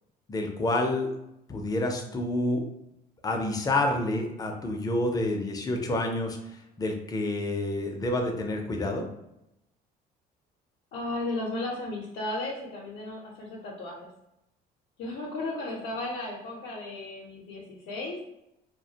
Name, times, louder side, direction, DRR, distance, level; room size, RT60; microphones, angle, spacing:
voice 1, 0.3-1.1 1.5-2.6 3.2-9.0, left 2 dB, 20° left, 3 dB, 0.4 m, -28 dB
voice 2, 10.9-14.1 15.0-18.2, left 2 dB, 80° left, -3 dB, 0.5 m, -35 dB
2.3 x 2.1 x 2.7 m, 0.86 s
cardioid pair, 110°, 17 cm